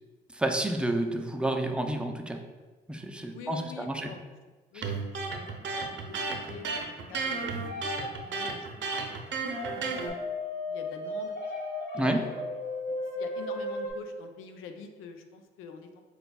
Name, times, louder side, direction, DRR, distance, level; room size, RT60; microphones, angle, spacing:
voice 1, 0.3-2.4 2.9-4.1 11.9-12.2, right 1 dB, 5° right, 4 dB, 0.4 m, -30 dB
voice 2, 3.3-4.3 4.7-9.4 10.7-11.4 12.0-12.5 13.1-16.0, left 5 dB, 90° left, 6 dB, 0.4 m, -46 dB
Electric guitar, 4.8-10.1, right 4 dB, 65° right, 0.6 m, -33 dB
sound 1, 7.7-8.6 9.6-13.9, left 1 dB, 60° left, 1.0 m, -35 dB
6.6 x 2.3 x 2.2 m, 1.3 s
cardioid pair, 80°, 21 cm